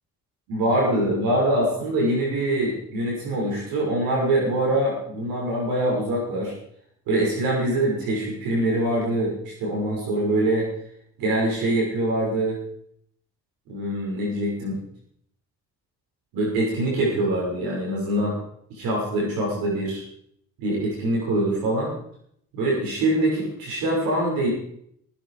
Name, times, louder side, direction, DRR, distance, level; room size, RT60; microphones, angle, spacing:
voice 1, 0.5-6.5 7.1-10.7 11.2-12.6 13.7-14.8 16.3-18.4 18.7-20.0 20.6-21.9 22.5-24.5, right 1 dB, 85° right, -2 dB, 6.2 m, -24 dB
17.0 x 15.5 x 5.0 m, 0.67 s
supercardioid pair, 50°, 34 cm